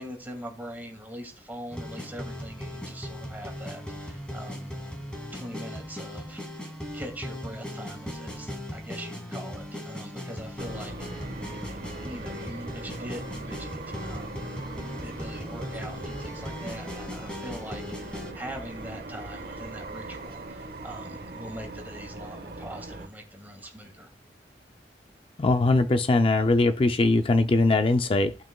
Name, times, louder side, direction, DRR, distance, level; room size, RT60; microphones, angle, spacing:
voice 1, 0.0-4.8 5.3-14.5 15.0-24.1, equal, 10° right, 2.4 m, -42 dB
sound 1, 1.7-18.3, left 1 dB, 5° left, 2.0 m, -38 dB
sound 2, 10.6-23.1, right 2 dB, 55° right, 1.2 m, -40 dB
voice 2, 25.4-28.3, left 2 dB, 30° left, 0.4 m, -21 dB
17.0 x 6.1 x 2.2 m
head